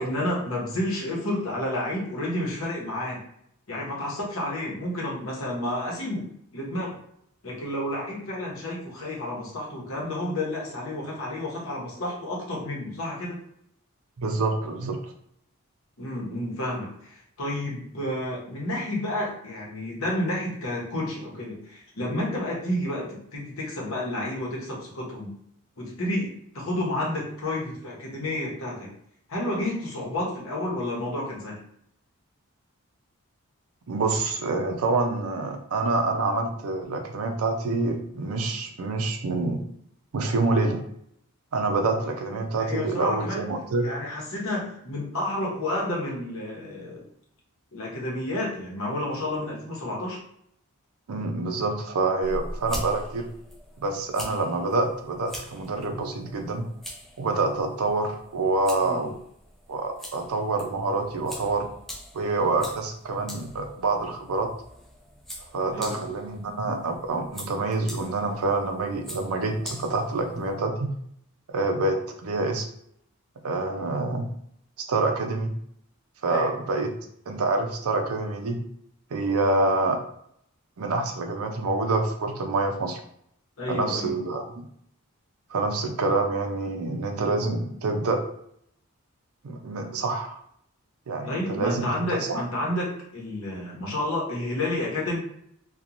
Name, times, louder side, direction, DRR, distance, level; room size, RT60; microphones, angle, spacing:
voice 1, 0.0-3.2 3.7-6.3 6.5-7.0 7.4-13.4 16.0-25.3 25.8-28.9 29.3-31.6 42.3-43.4 43.8-47.0 47.7-50.2 58.8-59.1 65.7-66.0 76.2-76.5 83.6-84.1 91.3-95.2, left 1 dB, 65° left, -3 dB, 0.9 m, -30 dB
voice 2, 14.2-15.1 33.9-39.6 40.1-40.8 41.5-43.9 51.1-53.3 53.8-56.7 57.2-59.2 59.7-61.7 62.1-64.5 65.5-70.9 71.5-72.6 73.4-74.3 74.8-75.5 76.2-76.9 77.3-78.6 79.1-80.0 80.8-83.0 83.7-84.7 85.5-88.2 89.4-90.4 91.1-92.4, right 3 dB, 75° right, 4 dB, 0.5 m, -27 dB
sound 1, 52.2-70.6, equal, ahead, 0.3 m, -43 dB
2.9 x 2.3 x 2.5 m, 0.70 s
head